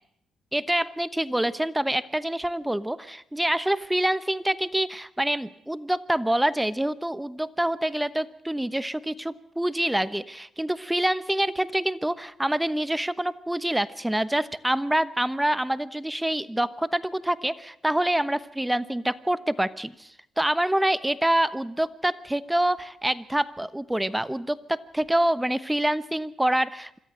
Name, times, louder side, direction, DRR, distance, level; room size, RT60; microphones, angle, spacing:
voice 1, 0.5-27.0, right 1 dB, 10° right, 15 dB, 1.1 m, -26 dB
25.5 x 14.0 x 7.8 m, 0.75 s
supercardioid pair, 55°, 0 cm